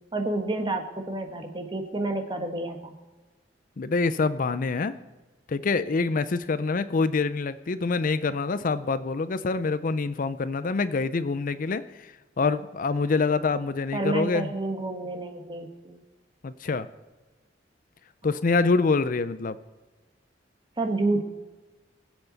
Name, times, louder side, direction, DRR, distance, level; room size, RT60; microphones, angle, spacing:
voice 1, 0.1-2.9 13.9-16.0 20.8-21.2, right 2 dB, 25° right, 5 dB, 1.3 m, -29 dB
voice 2, 3.8-5.0 5.5-14.5 16.4-16.9 18.2-19.6, left 4 dB, 45° left, 13 dB, 0.5 m, -26 dB
22.0 x 7.8 x 4.0 m, 1.2 s
head